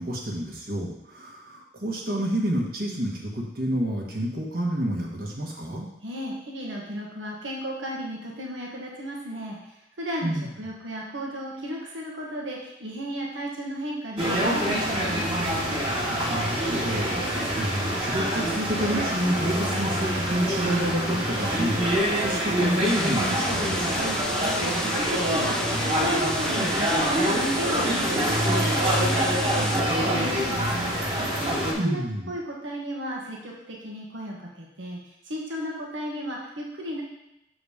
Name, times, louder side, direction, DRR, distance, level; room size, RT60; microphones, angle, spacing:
voice 1, 0.0-5.9 10.2-10.5 16.3-17.2 17.6-24.1 31.7-32.3, right 1 dB, 50° right, -1 dB, 1.3 m, -29 dB
voice 2, 6.0-15.7 24.3-31.5 31.8-32.0 32.3-35.0 35.2-37.0, equal, 90° right, -2 dB, 1.2 m, -35 dB
sound 1, 14.2-31.7, equal, 30° right, 1.5 m, -25 dB
sound 2, 22.8-29.8, left 1 dB, 5° left, 0.3 m, -33 dB
7.0 x 3.9 x 4.9 m, 0.86 s
head